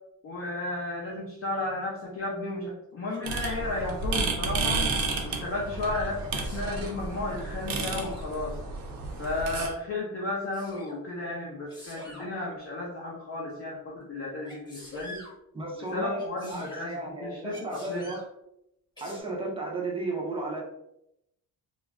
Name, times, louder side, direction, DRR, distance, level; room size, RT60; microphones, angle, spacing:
voice 1, 0.2-4.8 5.2-8.6 9.2-15.2 15.8-18.1, left 2 dB, 40° left, -4 dB, 0.5 m, -33 dB
Sneeze, 3.1-3.6 4.6-5.3 6.1-6.9 7.8-8.3 9.3-9.8 10.5-11.0 11.7-12.3 14.4-15.3 16.2-16.9 17.5-18.3 19.0-19.2, left 1 dB, 10° left, 1.0 m, -46 dB
sound 1, 3.2-9.7, right 3 dB, 70° right, 0.6 m, -31 dB
voice 2, 15.5-18.2 19.0-20.6, right 2 dB, 15° right, -1 dB, 0.4 m, -34 dB
2.3 x 2.0 x 3.4 m, 0.82 s
cardioid pair, 170°, 36 cm